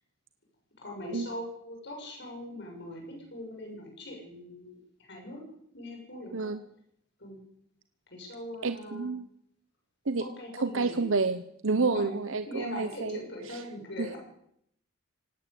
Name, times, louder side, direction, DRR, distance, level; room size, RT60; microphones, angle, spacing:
voice 1, 0.8-5.4 5.7-6.5 7.2-7.4 8.1-9.1 10.2-11.1 11.7-12.2 12.5-14.2, left 1 dB, 50° left, 0 dB, 7.1 m, -41 dB
voice 2, 8.6-9.3 10.1-10.2 10.6-13.2 14.0-14.1, right 4 dB, 65° right, 11 dB, 0.9 m, -29 dB
18.0 x 17.0 x 8.4 m, 0.72 s
head